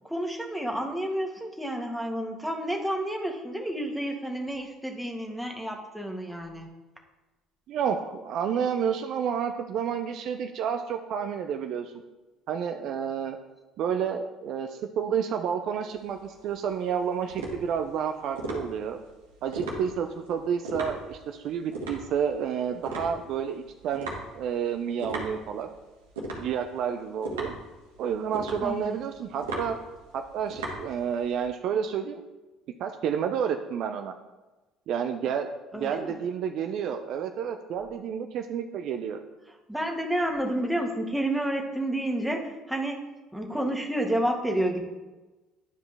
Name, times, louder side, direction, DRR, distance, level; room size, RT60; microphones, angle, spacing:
voice 1, 0.0-6.7 28.6-29.0 35.7-36.2 39.7-43.0 43.3-44.8, right 1 dB, ahead, 1 dB, 1.4 m, -30 dB
voice 2, 7.7-11.9 12.5-13.4 13.8-19.0 19.4-25.7 26.4-27.5 28.0-29.8 30.1-32.2 32.8-34.1 34.9-39.2, right 7 dB, 60° right, 6 dB, 0.5 m, -30 dB
sound 1, 15.9-31.4, right 2 dB, 80° right, 1.5 m, -38 dB
10.0 x 4.9 x 3.4 m, 1.1 s
hypercardioid pair, 60°, 0 cm